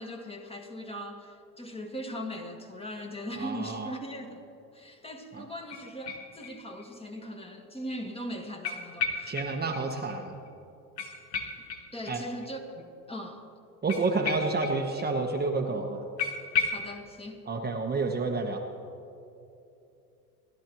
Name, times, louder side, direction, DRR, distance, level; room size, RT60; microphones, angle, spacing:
voice 1, 0.0-4.4 4.7-9.3 11.9-12.6 13.1-13.5 16.7-17.5, equal, 10° left, 3 dB, 1.6 m, -39 dB
voice 2, 3.4-3.9 5.3-5.4 9.3-10.3 12.1-12.2 13.8-16.0 17.5-18.6, right 3 dB, 20° right, 1 dB, 1.2 m, -29 dB
sound 1, 5.7-6.8 7.2-7.3 8.6-9.8 10.1-10.2 10.5-10.6 11.0-12.5 13.9-15.1 15.3-15.4 15.7-15.8 16.2-16.9, left 5 dB, 85° left, 1.5 m, -34 dB
29.5 x 11.5 x 3.1 m, 2.7 s
hypercardioid pair, 80°, 49 cm